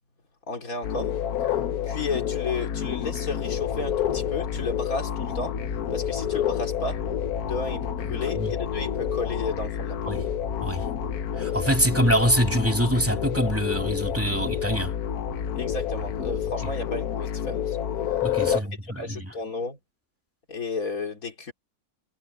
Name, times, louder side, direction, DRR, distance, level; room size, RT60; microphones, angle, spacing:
voice 1, 0.5-1.1 1.8-5.5 5.9-7.0 7.4-10.2 15.6-17.8 18.5-19.8 20.5-21.5, left 3 dB, 70° left, 3.3 m, -33 dB
sound 1, 0.8-18.6, left 9 dB, 85° left, 1.4 m, -29 dB
sound 2, 2.7-17.0, left 1 dB, 30° left, 7.3 m, -42 dB
voice 2, 8.0-8.5 10.1-10.2 10.6-10.8 11.4-14.9 16.6-16.7 18.2-19.3, equal, 10° right, 2.4 m, -25 dB
omnidirectional pair, 1.5 m